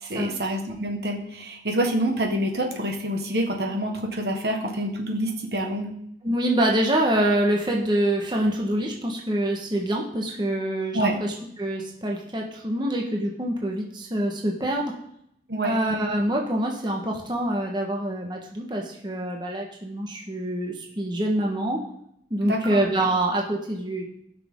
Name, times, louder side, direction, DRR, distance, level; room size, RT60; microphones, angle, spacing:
voice 1, 0.0-5.9 10.9-11.2 15.5-15.8 22.4-22.8, right 1 dB, 60° right, 3 dB, 1.5 m, -27 dB
voice 2, 6.2-14.9 15.6-21.8 22.3-24.0, right 1 dB, 25° right, 0 dB, 1.3 m, -25 dB
18.5 x 6.2 x 3.7 m, 0.73 s
head